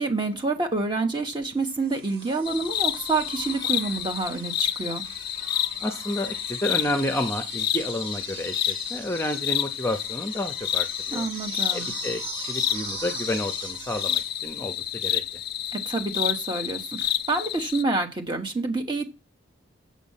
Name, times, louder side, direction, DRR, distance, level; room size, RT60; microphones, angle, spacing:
voice 1, 0.0-5.0 11.1-11.9 15.7-19.1, right 3 dB, 25° right, 4 dB, 1.3 m, -28 dB
sound 1, 1.6-15.6 17.0-17.1, right 5 dB, 85° right, 5.2 m, -42 dB
sound 2, 2.5-17.8, left 11 dB, 50° left, 0.4 m, -30 dB
voice 2, 5.8-11.3 11.7-15.2, left 1 dB, 15° left, 6 dB, 0.7 m, -30 dB
7.5 x 5.3 x 7.2 m, 0.28 s
head